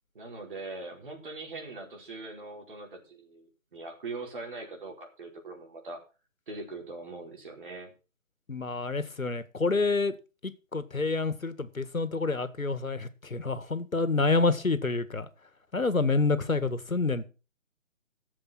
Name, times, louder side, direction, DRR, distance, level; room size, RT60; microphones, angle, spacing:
voice 1, 0.1-6.0 6.5-7.9, right 3 dB, 40° right, 4.7 m, -41 dB
voice 2, 8.5-10.1 10.4-15.3 15.7-17.3, left 3 dB, 90° left, 2.0 m, -28 dB
14.0 x 7.7 x 6.2 m
figure-of-eight pair, 160°, 40 cm